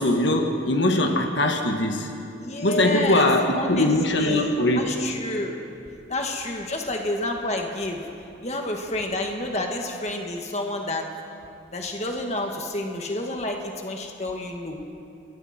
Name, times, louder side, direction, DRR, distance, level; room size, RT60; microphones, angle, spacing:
voice 1, 0.0-2.2 2.6-4.9, left 1 dB, 70° left, 3 dB, 1.6 m, -21 dB
voice 2, 2.4-3.3 3.5-5.6 6.1-8.1 8.4-11.1 11.7-14.8, left 1 dB, 35° left, 2 dB, 1.8 m, -29 dB
28.0 x 22.0 x 4.4 m, 2.6 s
head